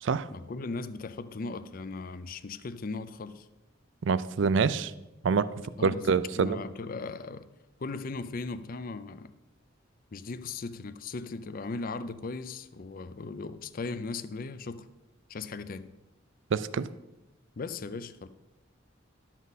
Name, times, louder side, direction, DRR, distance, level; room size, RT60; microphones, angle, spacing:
voice 1, 0.3-3.5 5.8-6.1 6.3-7.5 7.8-9.3 10.1-14.9 15.3-15.9 17.6-18.3, left 3 dB, 45° left, 0.5 m, -38 dB
voice 2, 4.0-4.9 5.2-5.5 5.8-6.6 16.5-16.9, right 5 dB, 65° right, 0.4 m, -26 dB
11.0 x 7.3 x 4.1 m
head